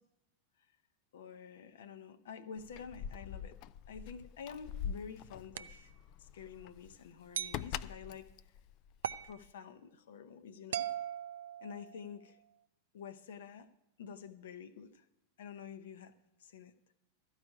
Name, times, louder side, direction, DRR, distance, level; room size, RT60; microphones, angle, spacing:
voice 1, 1.1-3.6 3.9-5.9 6.2-8.3 9.2-10.9 11.6-12.2 12.9-13.7 14.0-15.1 15.4-16.1 16.4-16.7, left 7 dB, 60° left, 11 dB, 0.7 m, -48 dB
Keys jangling, 2.6-9.5, left 9 dB, 40° left, 0.3 m, -44 dB
sound 1, 5.6-5.8 7.3-7.7 9.0-9.3 10.7-12.1, right 10 dB, 60° right, 0.3 m, -39 dB
13.5 x 4.9 x 8.9 m, 0.84 s
figure-of-eight pair, 90°, 0 cm